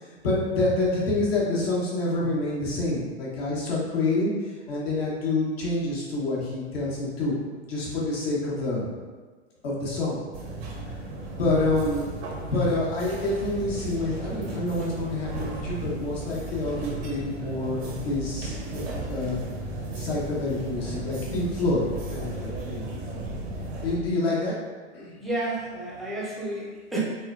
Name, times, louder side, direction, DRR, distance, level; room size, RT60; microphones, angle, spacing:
voice 1, 0.0-4.3 4.7-7.3 7.7-8.9 9.6-10.2 11.3-12.1 12.5-19.4 19.9-22.8 23.8-24.6 24.9-25.2, left 2 dB, 55° left, -5 dB, 1.1 m, -27 dB
sound 1, 10.3-24.0, right 2 dB, 55° right, 0.7 m, -35 dB
voice 2, 25.2-27.0, right 1 dB, ahead, -8 dB, 0.5 m, -31 dB
3.6 x 2.1 x 2.4 m, 1.4 s
figure-of-eight pair, 105°, 35 cm